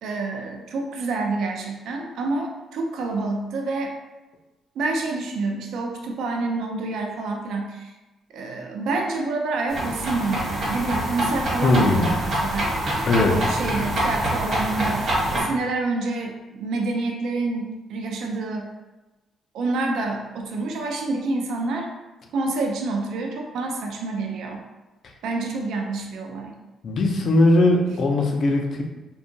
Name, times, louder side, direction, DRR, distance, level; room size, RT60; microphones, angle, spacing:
voice 1, 0.0-3.9 4.8-7.9 8.3-12.7 13.1-18.7 19.5-21.9 22.3-24.6 25.2-26.6, right 3 dB, 80° right, 2 dB, 0.3 m, -28 dB
sound 1, 9.7-15.4, right 1 dB, 60° right, 1.1 m, -25 dB
voice 2, 11.6-12.1 13.1-13.5 26.8-28.8, left 2 dB, 55° left, 2 dB, 0.4 m, -19 dB
2.7 x 2.3 x 2.6 m, 1.1 s
cardioid pair, 90°, 0 cm